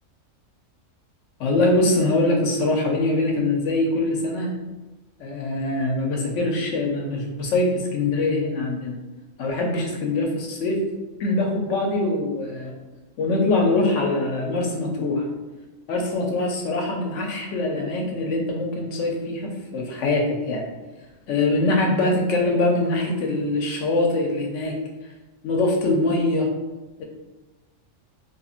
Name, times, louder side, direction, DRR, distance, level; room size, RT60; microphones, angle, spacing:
voice 1, 1.4-4.5 5.2-8.9 9.4-10.8 11.2-12.7 13.2-15.3 15.9-20.6 21.3-24.7 25.4-26.5, left 2 dB, 70° left, 0 dB, 0.9 m, -23 dB
3.0 x 2.5 x 2.4 m, 1.1 s
omnidirectional pair, 1.3 m